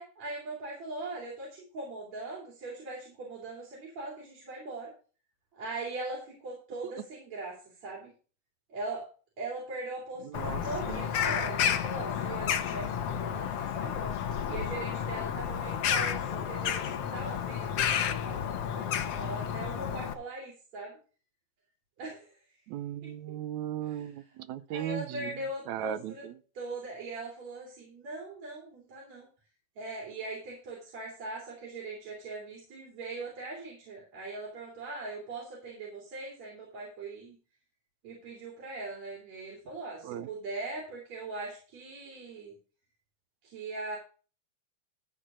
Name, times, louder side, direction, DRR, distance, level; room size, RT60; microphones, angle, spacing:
voice 1, 0.0-4.9 5.5-8.1 8.7-9.1 9.4-14.2 14.5-21.0 22.0-22.4 23.8-24.1 24.7-26.2 26.5-29.3 29.8-37.4 38.0-42.5 43.4-44.0, right 2 dB, 65° right, -4 dB, 4.5 m, -40 dB
voice 2, 10.2-11.0 22.7-26.3 40.0-40.3, right 11 dB, 80° right, 13 dB, 2.0 m, -37 dB
Bird vocalization bird call bird song, 10.3-20.1, left 8 dB, 65° left, 1.8 m, -31 dB
13.5 x 4.5 x 6.2 m, 0.37 s
omnidirectional pair, 3.4 m